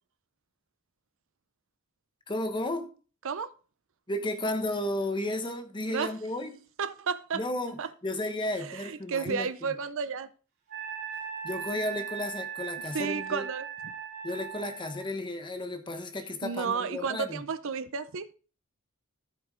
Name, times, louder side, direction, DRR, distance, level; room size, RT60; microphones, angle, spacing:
voice 1, 2.3-2.9 4.1-6.6 7.3-9.7 11.4-13.5 14.2-17.4, left 1 dB, 20° left, 1.1 m, -33 dB
voice 2, 6.8-7.4 7.8-7.9 8.6-10.3 12.9-13.7 16.4-18.3, right 5 dB, 65° right, 0.6 m, -32 dB
Wind instrument woodwind instrument, 10.7-15.0, right 7 dB, 45° right, 2.5 m, -38 dB
14.0 x 4.9 x 3.7 m
head